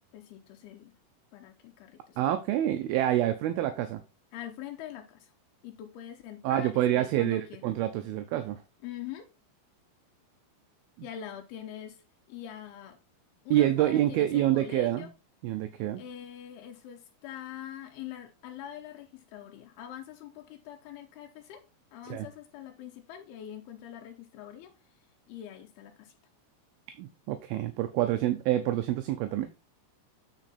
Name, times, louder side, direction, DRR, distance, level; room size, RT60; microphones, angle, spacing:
voice 1, 0.1-0.9 1.3-2.4 4.3-5.3 5.6-7.7 8.8-9.3 11.0-12.0 12.3-13.0 13.4-15.1 16.0-21.6 21.9-24.7 25.3-26.1, left 10 dB, 80° left, 2.6 m, -44 dB
voice 2, 2.2-4.0 6.4-8.6 13.5-15.1 15.4-16.0 22.1-22.3 27.0-29.5, right 13 dB, 80° right, 2.3 m, -27 dB
9.1 x 4.4 x 4.1 m
omnidirectional pair, 4.7 m